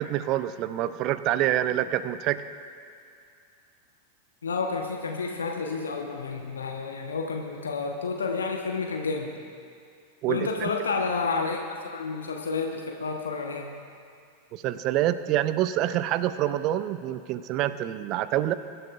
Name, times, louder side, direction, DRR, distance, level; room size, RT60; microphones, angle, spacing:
voice 1, 0.0-2.4 10.2-10.7 14.5-18.5, right 13 dB, 40° right, 13 dB, 0.5 m, -26 dB
voice 2, 4.4-9.3 10.3-13.7, left 4 dB, 70° left, 3 dB, 1.0 m, -30 dB
23.5 x 12.0 x 2.5 m, 2.4 s
figure-of-eight pair, 90°, 0 cm